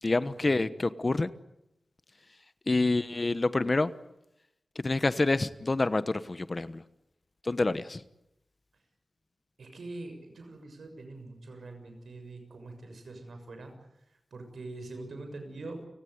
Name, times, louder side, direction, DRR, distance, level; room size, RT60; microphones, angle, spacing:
voice 1, 0.0-1.3 2.7-3.9 4.7-6.8 7.4-8.0, left 2 dB, 40° left, 14 dB, 1.2 m, -27 dB
voice 2, 9.6-13.7 14.1-15.9, right 2 dB, 85° right, 6 dB, 6.6 m, -44 dB
30.0 x 17.0 x 9.7 m, 0.87 s
cardioid pair, 60°, 0 cm